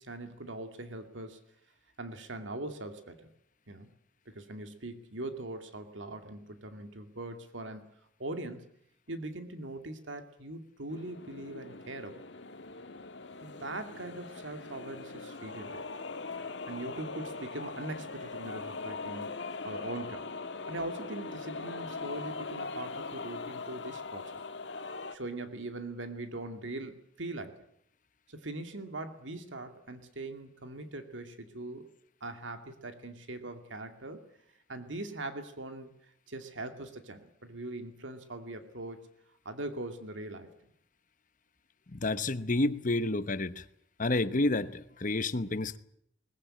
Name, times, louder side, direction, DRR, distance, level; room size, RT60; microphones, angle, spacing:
voice 1, 0.0-1.4 2.0-3.3 3.7-3.9 4.3-8.7 9.1-12.2 13.4-15.9 16.7-20.3 20.7-24.4 25.1-27.6 28.3-31.9 32.2-34.2 34.7-35.9 36.3-39.0 39.4-40.5, right 2 dB, 80° right, 2.4 m, -41 dB
sound 1, 10.9-25.2, left 4 dB, 65° left, 1.7 m, -41 dB
voice 2, 41.9-43.6 44.0-45.8, left 2 dB, 45° left, 1.0 m, -29 dB
21.0 x 20.5 x 8.8 m
head